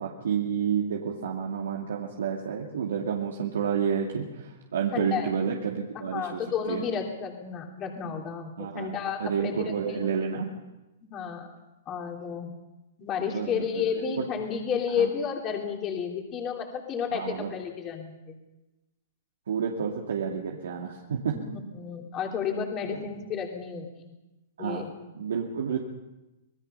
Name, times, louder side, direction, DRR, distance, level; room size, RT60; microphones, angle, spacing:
voice 1, 0.0-6.4 6.7-6.9 8.6-10.5 13.3-14.3 15.0-15.1 17.1-17.5 19.5-21.4 22.9-23.1 24.6-24.8 25.1-25.8, right 7 dB, 85° right, -1 dB, 2.5 m, -30 dB
voice 2, 4.9-5.3 6.1-10.0 11.1-11.5 11.9-12.5 13.0-18.4 21.3-21.5 21.7-23.9 24.6-24.8, left 7 dB, 25° left, 1 dB, 3.3 m, -31 dB
26.0 x 19.0 x 5.7 m, 1.0 s
hypercardioid pair, 145°, 0 cm